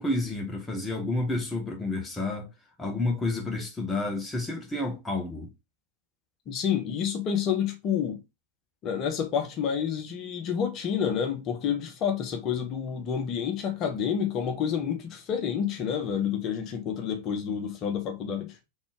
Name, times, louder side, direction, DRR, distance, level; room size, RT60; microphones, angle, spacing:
voice 1, 0.0-2.5 2.8-5.5, left 2 dB, 10° left, 1.0 m, -30 dB
voice 2, 6.5-8.2 8.8-18.6, left 8 dB, 35° left, 1.1 m, -29 dB
4.2 x 3.6 x 3.5 m
figure-of-eight pair, 90°, 0 cm